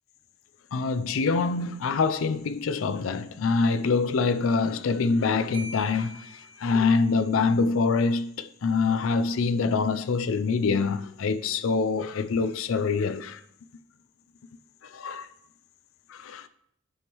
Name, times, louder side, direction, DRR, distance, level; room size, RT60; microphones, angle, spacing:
voice 1, 0.7-13.4 14.8-15.3 16.1-16.5, left 4 dB, 85° left, 0.4 m, -25 dB
Marimba xylophone, 5.5-7.3, equal, 75° right, 1.7 m, -44 dB
8.4 x 5.3 x 3.1 m
head